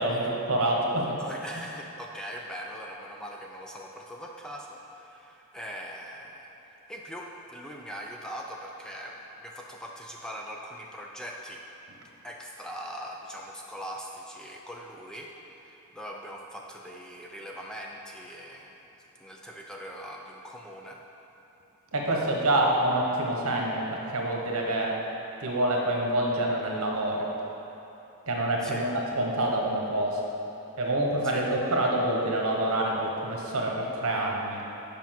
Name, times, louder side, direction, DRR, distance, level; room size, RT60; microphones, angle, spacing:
voice 1, 0.0-1.2 21.9-25.0 25.4-27.3 28.3-30.2 30.8-34.6, right 1 dB, 75° right, -1 dB, 1.2 m, -27 dB
voice 2, 1.2-11.6 12.2-18.8 19.2-21.0 28.6-28.9 31.2-31.5, equal, 5° left, -1 dB, 0.4 m, -41 dB
7.3 x 5.2 x 5.9 m, 3.0 s
head